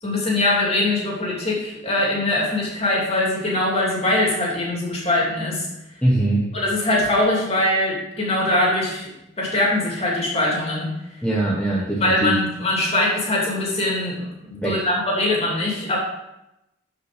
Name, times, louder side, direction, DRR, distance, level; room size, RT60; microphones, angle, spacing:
voice 1, 0.0-5.7 6.5-9.1 9.4-10.9 12.0-16.0, left 1 dB, 30° left, -3 dB, 2.9 m, -22 dB
voice 2, 6.0-6.5 11.2-12.3 14.5-14.8, right 1 dB, 5° left, -5 dB, 1.2 m, -21 dB
13.0 x 5.5 x 5.1 m, 0.92 s
head